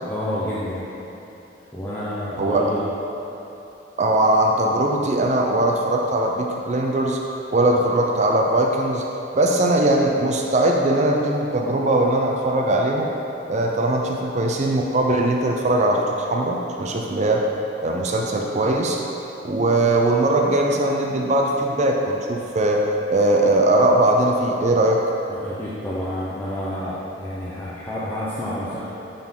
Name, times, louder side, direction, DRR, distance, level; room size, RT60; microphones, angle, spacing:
voice 1, 0.1-0.9 1.7-2.8 25.3-28.9, equal, 10° left, -10 dB, 0.7 m, -29 dB
voice 2, 4.0-7.2 7.5-9.0 9.3-13.1 13.5-17.4 17.8-19.0 19.4-22.8 23.1-25.0, right 1 dB, 40° right, 0 dB, 0.5 m, -20 dB
10.5 x 3.9 x 3.7 m, 3.0 s
head